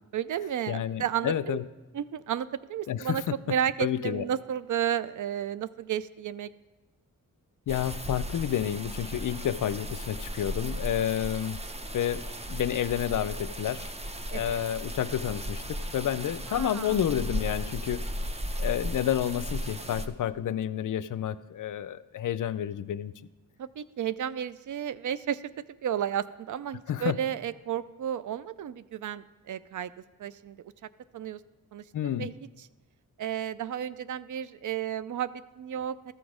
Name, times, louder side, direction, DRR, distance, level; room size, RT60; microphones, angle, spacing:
voice 1, 0.1-1.6 1.9-6.5 14.3-14.6 16.5-17.0 23.6-25.4 25.8-29.9 30.2-30.6 31.1-31.4 31.7-32.3 33.2-36.1, right 9 dB, 60° right, 16 dB, 0.5 m, -32 dB
voice 2, 0.7-1.6 2.9-3.4 3.8-4.2 7.7-11.6 11.9-12.2 12.5-13.9 14.3-18.0 18.6-23.1 26.9-27.2 31.9-32.3, left 10 dB, 65° left, 15 dB, 0.5 m, -30 dB
sound 1, 7.7-20.1, equal, 20° right, 0.7 m, -36 dB
13.5 x 6.0 x 5.0 m, 1.2 s
cardioid pair, 55°, 35 cm